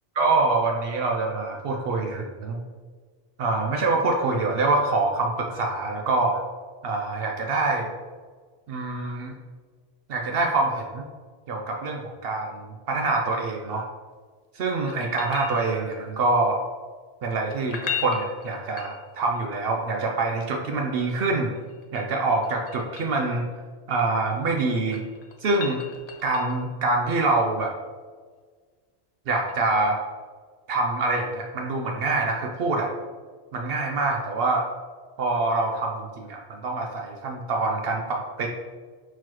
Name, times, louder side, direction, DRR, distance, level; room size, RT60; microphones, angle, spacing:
voice 1, 0.2-2.6 3.4-6.4 6.8-7.9 8.7-9.4 10.1-11.1 11.5-13.9 14.5-16.6 17.2-21.5 21.9-23.5 23.9-25.0 25.4-25.8 26.2-27.7 29.3-30.0 30.7-32.9 33.5-34.6 35.2-38.5, right 3 dB, 70° right, 1 dB, 0.7 m, -25 dB
sound 1, 14.9-16.1 17.6-19.4 21.6-23.2 24.6-26.7 29.5-29.6, left 6 dB, 50° left, 0.5 m, -37 dB
4.4 x 4.1 x 2.9 m, 1.5 s
omnidirectional pair, 1.1 m